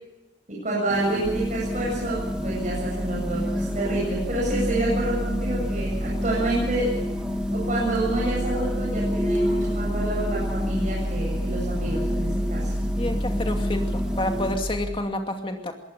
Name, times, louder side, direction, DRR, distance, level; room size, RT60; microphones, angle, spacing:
voice 1, 0.5-6.9 7.5-12.7, right 2 dB, 40° right, -5 dB, 8.0 m, -28 dB
sound 1, 0.9-14.5, equal, 5° right, 2.4 m, -30 dB
sound 2, 1.2-15.0, equal, 80° right, 2.2 m, -30 dB
voice 2, 13.0-15.7, left 1 dB, 25° left, 4 dB, 2.4 m, -29 dB
22.5 x 18.0 x 7.0 m, 1.0 s
head